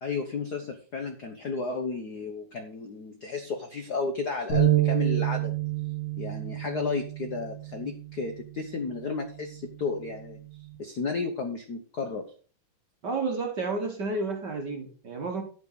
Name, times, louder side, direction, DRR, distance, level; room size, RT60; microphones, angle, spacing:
voice 1, 0.0-5.5 6.2-10.4 10.8-12.2, left 4 dB, 70° left, 6 dB, 0.9 m, -33 dB
sound 1, 4.5-10.7, right 13 dB, 90° left, 7.5 m, -30 dB
voice 2, 13.0-15.4, right 3 dB, 50° right, 4 dB, 1.5 m, -31 dB
10.5 x 8.9 x 4.0 m, 0.40 s
omnidirectional pair, 3.4 m